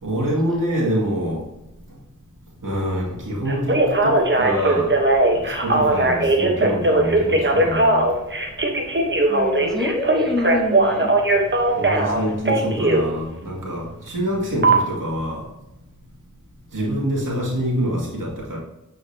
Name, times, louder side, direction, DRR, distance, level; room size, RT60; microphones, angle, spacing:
voice 1, 0.0-1.4 2.6-5.0 5.3-8.1 11.8-15.5 16.7-18.6, equal, 85° right, -5 dB, 2.3 m, -25 dB
Telephone, 3.5-13.1 14.6-14.7, right 2 dB, 40° right, 1.3 m, -19 dB
voice 2, 9.3-11.1 13.0-13.1 16.8-17.0, left 2 dB, ahead, -2 dB, 1.6 m, -26 dB
8.2 x 4.5 x 2.9 m, 0.92 s
cardioid pair, 55°, 31 cm